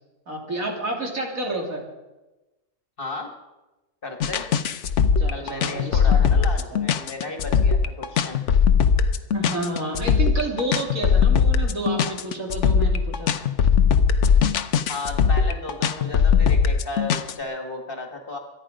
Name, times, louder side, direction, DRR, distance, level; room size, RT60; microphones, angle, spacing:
voice 1, 0.3-1.8 5.2-6.8 9.3-13.5, right 2 dB, 90° right, 0 dB, 3.4 m, -30 dB
voice 2, 3.0-3.3 4.0-4.5 5.3-8.4 14.9-18.4, left 2 dB, 40° left, 4 dB, 2.1 m, -34 dB
sound 1, 4.2-17.3, left 6 dB, 65° left, 1.0 m, -19 dB
24.0 x 10.0 x 5.1 m, 1.1 s
omnidirectional pair, 1.4 m